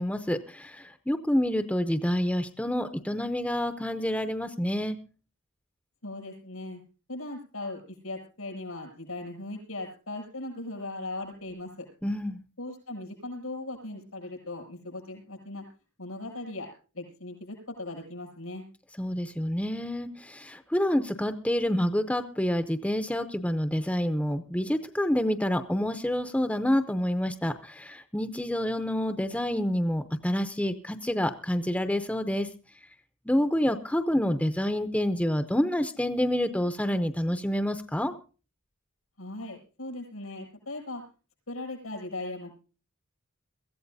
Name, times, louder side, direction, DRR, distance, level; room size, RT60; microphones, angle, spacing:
voice 1, 0.0-5.0 12.0-12.4 19.0-32.5 33.3-38.1, left 1 dB, 5° left, 9 dB, 0.6 m, -28 dB
voice 2, 6.0-6.8 7.1-11.9 12.6-15.6 16.0-16.7 16.9-18.6 39.2-41.0 41.5-42.5, left 2 dB, 90° left, 1 dB, 7.4 m, -38 dB
22.5 x 14.5 x 2.7 m, 0.35 s
head